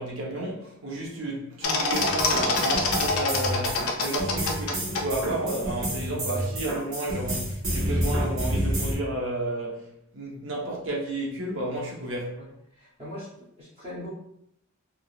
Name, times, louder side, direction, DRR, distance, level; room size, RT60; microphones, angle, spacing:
voice 1, 0.0-9.8 10.1-12.4, right 1 dB, 60° right, 0.8 m, -32 dB
sound 1, 1.6-5.0, left 3 dB, 75° left, 0.5 m, -25 dB
sound 2, 1.9-9.0, equal, 80° right, 1.2 m, -29 dB
voice 2, 12.7-14.1, equal, 25° right, 0.8 m, -40 dB
3.6 x 2.5 x 2.3 m
head